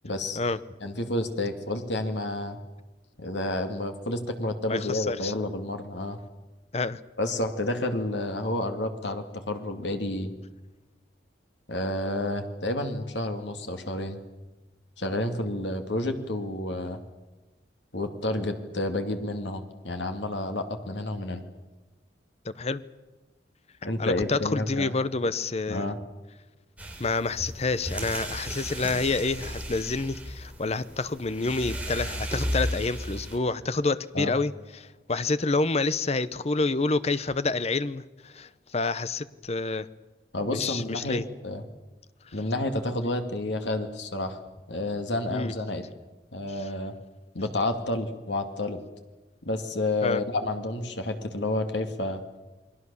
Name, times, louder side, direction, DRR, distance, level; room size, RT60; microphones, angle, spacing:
voice 1, 0.0-0.4 0.8-2.6 3.2-6.2 7.2-10.3 11.7-14.2 15.0-17.0 17.9-21.4 23.8-24.9 25.7-26.0 34.1-34.3 40.3-41.6 42.3-44.4 44.7-45.8 46.3-46.9 47.3-48.8 49.4-52.2, left 1 dB, 80° left, 6 dB, 2.4 m, -30 dB
voice 2, 4.7-5.3 6.7-7.0 22.4-22.8 24.0-25.9 27.0-39.9 40.5-41.2 42.3-42.4 45.3-45.5 46.5-46.7 50.0-50.2, left 3 dB, 35° left, 15 dB, 0.8 m, -28 dB
sound 1, 26.8-33.4, equal, 10° right, 3.9 m, -34 dB
29.0 x 21.0 x 7.0 m, 1.1 s
head